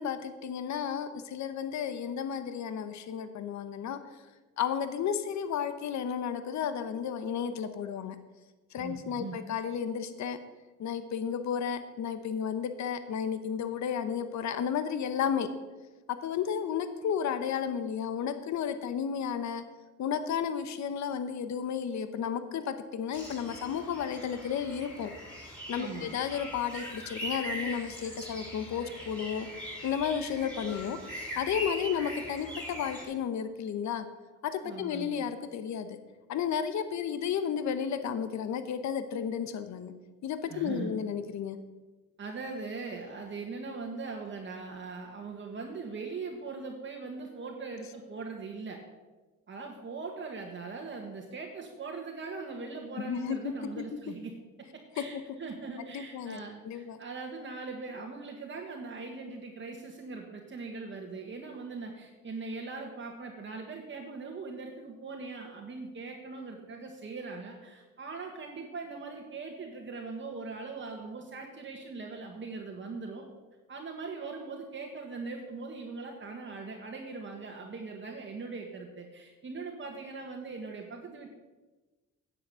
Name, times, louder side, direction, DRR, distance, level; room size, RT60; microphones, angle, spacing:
voice 1, 0.0-4.2 4.6-8.2 8.7-10.4 10.8-15.5 16.1-19.6 20.0-25.1 25.4-29.5 29.8-34.1 34.4-35.9 36.3-39.9 40.2-41.6 53.0-53.5 55.0-55.1 55.8-56.4 56.6-57.0, left 8 dB, 65° left, 10 dB, 0.9 m, -33 dB
voice 2, 8.8-9.4 25.8-26.1 34.6-35.2 40.5-40.9 42.2-48.8 49.5-54.3 54.7-73.3 73.7-81.3, right 4 dB, 40° right, 1 dB, 1.5 m, -40 dB
sound 1, 23.1-33.0, equal, 5° left, 4.3 m, -41 dB
9.7 x 7.8 x 6.7 m, 1.2 s
cardioid pair, 90°, 30 cm